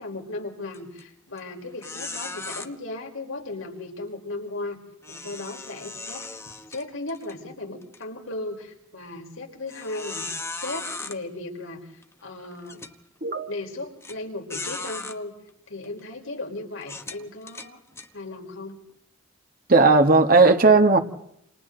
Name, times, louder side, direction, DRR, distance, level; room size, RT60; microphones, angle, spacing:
voice 1, 0.0-4.8 5.1-6.4 6.7-10.3 10.6-11.8 12.2-12.8 13.5-15.3 15.7-17.8 18.1-18.8, left 2 dB, 80° left, 1 dB, 4.8 m, -36 dB
sound 1, 0.7-1.0 1.4-1.5 1.8-2.7 5.0-7.3 7.8-8.0 8.6-8.7 9.7-11.2 12.0-12.1 12.7-12.9 14.0-14.1 14.5-15.2 15.8-16.0 16.8-18.1, left 3 dB, 15° left, 1.2 m, -36 dB
voice 2, 19.7-21.0, right 3 dB, 45° right, 6 dB, 1.6 m, -16 dB
29.0 x 28.5 x 4.0 m, 0.75 s
head